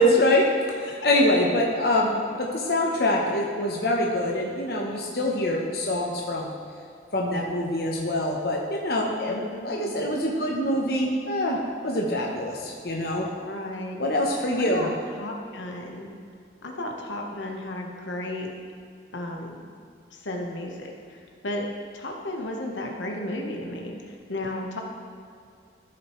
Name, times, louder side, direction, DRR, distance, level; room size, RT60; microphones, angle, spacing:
voice 1, 0.0-6.5 7.1-13.3 14.0-14.9, left 1 dB, 55° left, -1 dB, 0.9 m, -24 dB
voice 2, 9.3-9.9 13.4-14.0 14.6-14.9 15.2-16.1 16.6-18.5 19.1-19.6 20.2-21.2 21.4-21.6 21.9-24.8, left 1 dB, 85° left, 1 dB, 1.1 m, -33 dB
13.5 x 6.1 x 3.2 m, 2.4 s
head